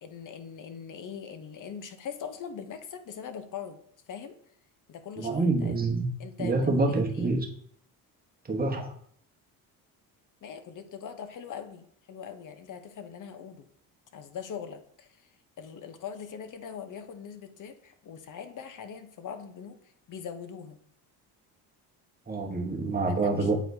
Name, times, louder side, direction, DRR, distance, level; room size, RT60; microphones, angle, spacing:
voice 1, 0.0-3.8 4.1-4.4 4.9-5.9 6.2-7.3 10.4-13.7 14.1-15.3 15.6-19.8 20.1-20.8 23.1-23.5, left 7 dB, 45° left, 9 dB, 0.9 m, -41 dB
voice 2, 5.2-6.1 6.4-7.5 8.5-8.9 22.3-23.6, right 3 dB, 20° right, 2 dB, 1.2 m, -27 dB
8.2 x 4.2 x 2.7 m, 0.63 s
supercardioid pair, 80°, 44 cm